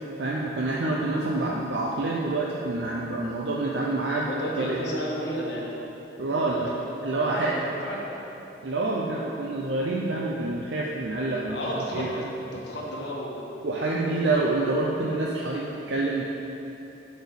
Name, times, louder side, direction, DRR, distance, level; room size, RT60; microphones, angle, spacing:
voice 1, 0.2-4.3 4.6-4.8 6.2-6.7 7.0-7.5 8.6-12.3 13.6-16.2, right 2 dB, 75° right, -3 dB, 0.7 m, -27 dB
voice 2, 4.2-5.9 6.3-6.5 7.2-8.2 11.5-12.1 12.5-13.5 13.8-14.3, equal, 70° left, -4 dB, 1.6 m, -33 dB
8.0 x 4.3 x 7.0 m, 2.9 s
head